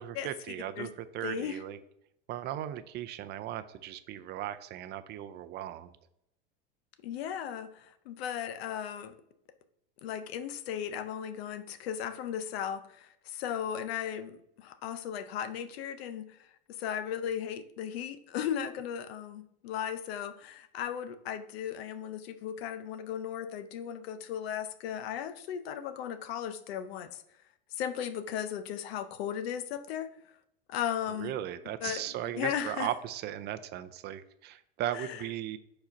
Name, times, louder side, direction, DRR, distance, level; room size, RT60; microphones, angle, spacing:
voice 1, 0.0-1.8 2.3-5.9 31.2-35.6, right 12 dB, 35° right, 11 dB, 0.4 m, -37 dB
voice 2, 1.2-1.6 7.0-9.1 10.0-14.3 14.6-16.5 16.8-27.2 27.7-30.1 30.7-31.3 31.8-32.9 34.9-35.2, left 9 dB, 80° left, 11 dB, 0.8 m, -36 dB
4.8 x 4.3 x 5.2 m, 0.77 s
supercardioid pair, 130°, 30 cm